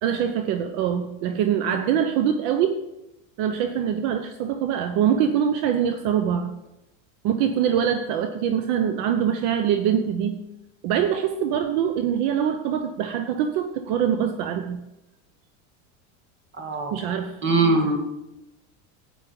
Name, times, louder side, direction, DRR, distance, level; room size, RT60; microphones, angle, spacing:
voice 1, 0.0-2.8 3.4-6.5 7.2-10.4 10.8-14.8 16.9-17.4, right 8 dB, 60° right, 7 dB, 1.0 m, -24 dB
voice 2, 16.6-17.0 17.4-18.0, right 3 dB, 25° right, 4 dB, 2.1 m, -21 dB
10.0 x 9.4 x 5.3 m, 0.93 s
supercardioid pair, 125°, 42 cm